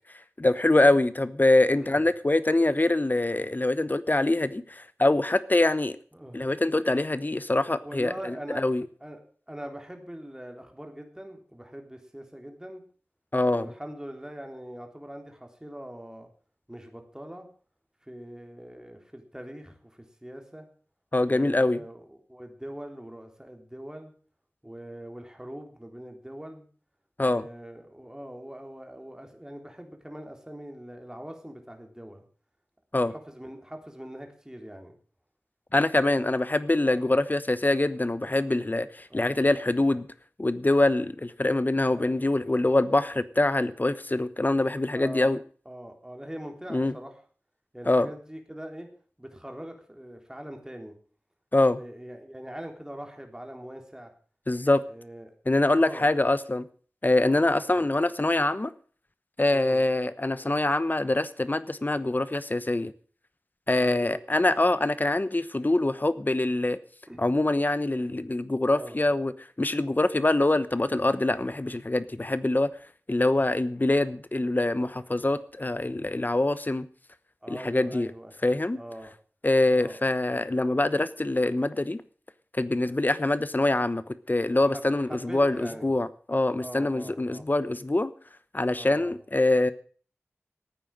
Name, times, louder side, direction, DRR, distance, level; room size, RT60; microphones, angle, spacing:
voice 1, 0.4-6.0 6.3-8.1 8.6-8.8 13.3-13.7 21.1-21.8 27.2-27.4 32.9-33.1 35.7-40.1 40.4-45.4 46.7-46.9 47.9-48.1 51.5-51.8 54.5-54.8 55.5-56.6 57.0-58.7 59.4-62.9 63.7-66.8 67.2-69.3 69.6-72.7 73.1-76.9 77.5-78.1 78.4-78.8 79.4-82.0 82.6-84.0 84.3-88.1 88.5-89.7, left 2 dB, 40° left, 15 dB, 1.0 m, -24 dB
voice 2, 6.1-6.4 7.8-8.6 9.0-9.2 9.5-12.8 13.5-16.3 16.7-17.5 18.0-20.7 21.2-24.1 24.6-26.6 27.2-32.2 33.1-34.9 36.0-36.3 36.8-37.2 39.1-39.4 41.9-42.1 44.9-45.3 45.6-47.2 47.7-48.9 49.2-51.0 51.7-54.1 54.9-55.3 55.7-56.2 57.2-57.4 57.7-57.8 59.5-59.8 63.7-64.2 67.1-67.3 68.7-69.0 73.3-73.4 76.3-76.4 77.4-78.3 78.7-79.1 79.7-80.0 84.5-85.9 86.6-87.5 88.7-89.1, right 1 dB, 15° right, 4 dB, 3.5 m, -42 dB
14.5 x 9.2 x 7.5 m, 0.43 s
wide cardioid pair, 55°, 5 cm